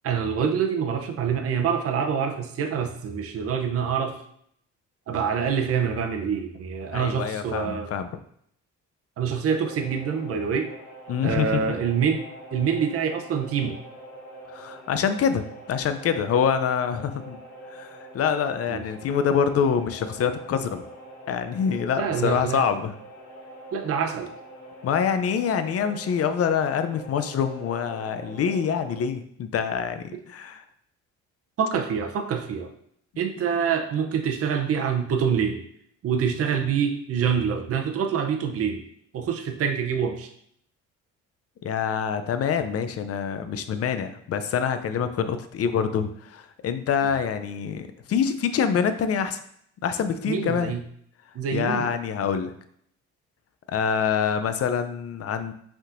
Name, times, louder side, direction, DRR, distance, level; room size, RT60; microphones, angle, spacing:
voice 1, 0.0-4.2 5.1-7.9 9.2-10.7 11.2-12.2 12.5-13.8 18.7-18.8 22.0-22.7 23.7-24.3 31.6-32.7 33.2-35.6 36.0-38.8 39.1-40.3 50.3-50.8 51.3-51.9, right 7 dB, 50° right, 4 dB, 0.7 m, -26 dB
voice 2, 6.9-8.1 11.1-11.6 14.5-17.4 17.7-20.8 21.3-22.9 24.8-30.6 41.6-49.4 49.8-50.7 51.5-52.5 53.7-55.5, left 7 dB, 50° left, 10 dB, 0.5 m, -26 dB
sound 1, 9.6-29.0, right 1 dB, 80° left, 1.5 m, -44 dB
5.2 x 3.6 x 2.5 m, 0.68 s
cardioid pair, 90°, 30 cm